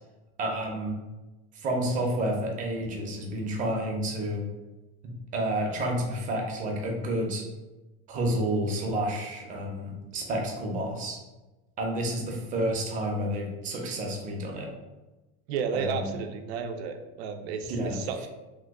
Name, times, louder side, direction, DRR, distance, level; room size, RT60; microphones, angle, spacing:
voice 1, 0.4-0.9 1.5-4.4 5.0-7.4 8.1-11.2 11.8-14.7 15.7-16.2 17.7-18.0, right 1 dB, 25° right, 0 dB, 0.5 m, -30 dB
voice 2, 15.5-18.3, right 6 dB, 85° right, 6 dB, 0.5 m, -32 dB
3.0 x 2.2 x 3.5 m, 1.1 s
supercardioid pair, 155°, 31 cm